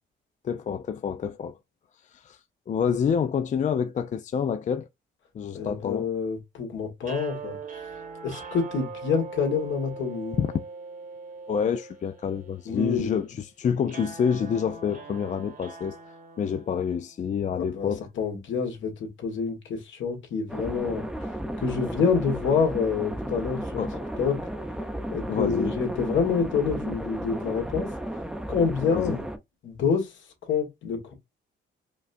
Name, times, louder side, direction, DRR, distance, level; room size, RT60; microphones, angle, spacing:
voice 1, 0.4-1.6 2.1-2.4 2.7-4.9 5.3-6.1 10.4-10.5 11.5-16.0 16.4-18.1 23.8-24.0 25.3-25.8 28.9-29.2, left 7 dB, 40° left, 0.4 m, -27 dB
voice 2, 5.5-7.6 8.2-10.4 12.7-13.1 17.5-23.7 24.2-24.4 25.1-27.9 28.5-29.2 29.6-31.1, left 5 dB, 70° left, 1.7 m, -27 dB
sound 1, 7.0-17.2, right 4 dB, 45° right, 1.2 m, -42 dB
sound 2, 20.5-29.4, right 1 dB, 5° right, 0.7 m, -34 dB
5.0 x 2.2 x 2.6 m
cardioid pair, 90°, 20 cm